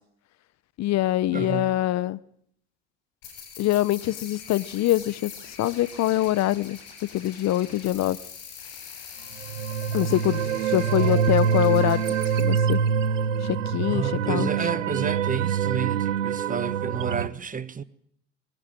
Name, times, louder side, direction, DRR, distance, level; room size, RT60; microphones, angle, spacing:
voice 1, 0.8-2.2 3.6-6.8 7.1-8.2 9.9-12.0 12.4-12.8 13.4-14.5, left 14 dB, 45° left, 0.9 m, -24 dB
voice 2, 1.3-1.8 13.9-17.8, right 6 dB, 20° right, 1.3 m, -30 dB
sound 1, 3.2-12.4, left 7 dB, 65° left, 7.3 m, -43 dB
sound 2, 9.4-17.3, right 7 dB, 85° right, 1.1 m, -25 dB
21.5 x 19.0 x 9.1 m
hypercardioid pair, 75°, 37 cm